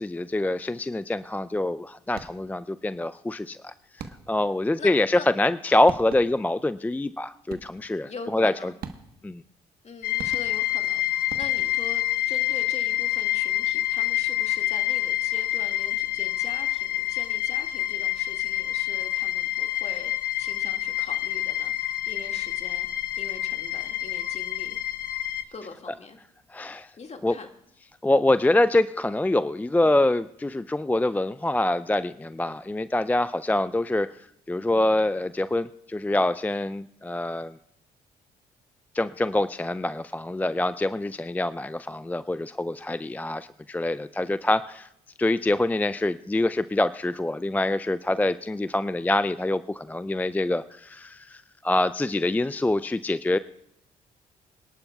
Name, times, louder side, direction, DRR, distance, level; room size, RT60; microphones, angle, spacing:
voice 1, 0.0-8.7 9.2-9.4 26.5-26.9 27.2-27.3 28.0-37.6 38.9-44.9 45.2-53.4, left 2 dB, 10° left, 14 dB, 0.4 m, -25 dB
sound 1, 2.1-2.6 4.0-4.5 5.5-5.6 5.9-6.5 7.5-8.0 8.8-9.4 10.2-10.9 11.3-12.0, right 6 dB, 65° right, 1.2 m, -42 dB
voice 2, 4.8-5.3 8.0-8.7 9.8-22.9 23.2-24.8 25.5-26.2 27.0-27.5, left 4 dB, 40° left, 4 dB, 2.0 m, -43 dB
sound 2, 10.0-25.4, left 15 dB, 65° left, 1.0 m, -27 dB
26.5 x 11.5 x 2.3 m, 0.76 s
supercardioid pair, 55°, 17 cm